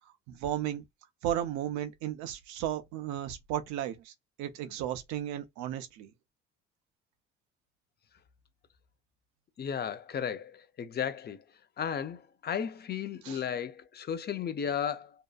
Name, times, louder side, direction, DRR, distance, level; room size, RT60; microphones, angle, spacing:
voice 1, 0.3-0.8 1.2-6.1 13.2-13.4, right 11 dB, 75° right, 0.6 m, -34 dB
voice 2, 9.6-11.4 11.8-15.1, left 8 dB, 35° left, 0.5 m, -34 dB
2.7 x 2.2 x 2.3 m
supercardioid pair, 65°, 29 cm